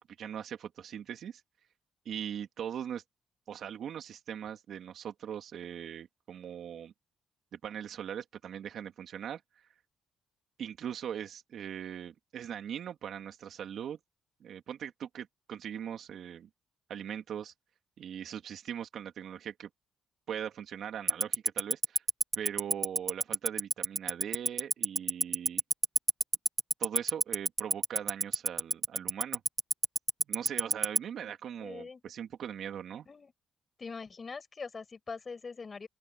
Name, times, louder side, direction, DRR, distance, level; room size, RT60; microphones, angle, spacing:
voice 1, 0.2-1.4 2.0-3.0 3.5-6.9 7.5-9.4 10.6-14.0 14.4-16.5 16.9-17.5 18.0-19.7 20.3-22.0 22.4-25.6 26.8-29.4 30.3-33.1, right 9 dB, 65° right, 2.8 m, -40 dB
Tick-tock, 21.1-31.0, right 3 dB, 25° right, 1.1 m, -25 dB
voice 2, 31.6-32.0 33.1-33.3 33.8-35.9, left 4 dB, 35° left, 6.5 m, -42 dB
open air
cardioid pair, 90°, 0 cm